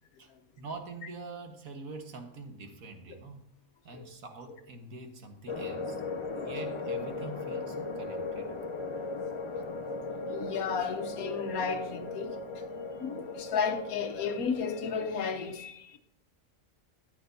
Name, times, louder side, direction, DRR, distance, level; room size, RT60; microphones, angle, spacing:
voice 1, 0.6-3.5 3.9-6.0 6.4-8.5, right 3 dB, 75° right, 1.8 m, -44 dB
sound 1, 5.5-15.2, left 3 dB, 35° left, 0.5 m, -37 dB
voice 2, 10.3-12.3 13.0-16.0, left 5 dB, 90° left, 1.4 m, -33 dB
13.5 x 9.3 x 2.7 m
omnidirectional pair, 1.5 m